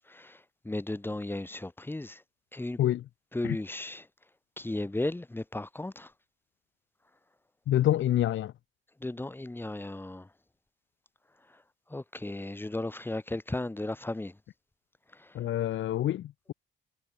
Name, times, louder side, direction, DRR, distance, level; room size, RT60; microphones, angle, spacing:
voice 1, 0.0-2.2 2.5-2.8 3.3-4.1 4.6-6.1 9.0-10.3 11.5-11.6 11.9-14.4 15.1-15.4, left 2 dB, 10° left, 2.5 m, -35 dB
voice 2, 7.7-8.5 15.3-16.5, left 12 dB, 75° left, 2.6 m, -27 dB
cardioid pair, 90°, 20 cm